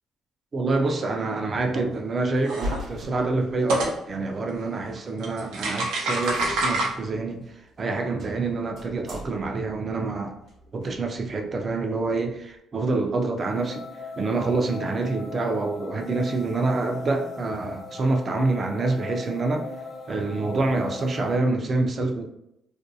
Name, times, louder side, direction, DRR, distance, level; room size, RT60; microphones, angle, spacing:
voice 1, 0.5-10.4 10.7-13.9 14.2-19.7 20.1-22.3, right 3 dB, 40° right, 4 dB, 0.4 m, -27 dB
sound 1, 1.8-2.0 2.4-3.9 5.0-5.1 5.2-6.9, right 2 dB, 90° right, 0.6 m, -27 dB
sound 2, 2.4-4.0 4.8-4.9 5.5-5.6 5.8-5.9 6.2-12.6, left 1 dB, 65° right, 0.9 m, -41 dB
sound 3, 13.4-21.4, left 3 dB, 50° left, 0.6 m, -39 dB
2.5 x 2.2 x 2.6 m, 0.80 s
cardioid pair, 80°, 0 cm